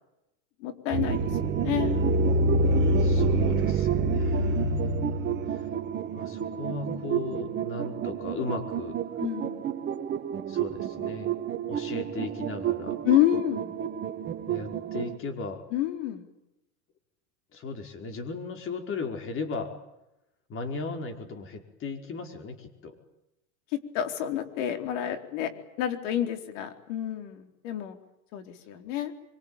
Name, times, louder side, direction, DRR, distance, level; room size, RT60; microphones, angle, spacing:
voice 1, 0.6-1.3 1.6-2.0 4.1-4.6 9.2-9.6 13.0-13.7 15.7-16.3 23.7-25.5 25.8-28.0 28.3-29.1, left 12 dB, 60° left, 7 dB, 4.3 m, -29 dB
sound 1, 0.9-15.2, right 4 dB, 25° right, 1.8 m, -28 dB
voice 2, 3.0-5.2 5.5-5.7 6.1-9.0 10.5-11.3 11.7-13.0 14.4-15.6 17.5-19.7 20.5-23.0, left 4 dB, 30° left, 5 dB, 5.1 m, -36 dB
24.5 x 24.5 x 9.1 m, 0.90 s
supercardioid pair, 130°, 42 cm